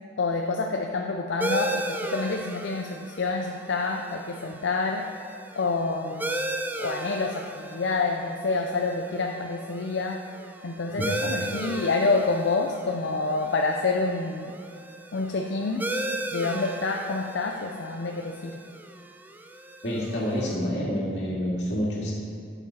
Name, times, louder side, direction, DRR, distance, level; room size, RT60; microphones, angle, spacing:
voice 1, 0.2-5.1 5.6-6.4 6.8-10.2 10.6-14.5 15.1-15.8 16.3-18.6, left 3 dB, 90° left, 2 dB, 0.6 m, -27 dB
sound 1, 1.4-20.5, right 1 dB, 10° right, 0.4 m, -36 dB
voice 2, 19.8-22.1, equal, 70° left, -4 dB, 2.3 m, -28 dB
9.6 x 7.0 x 4.3 m, 2.4 s
head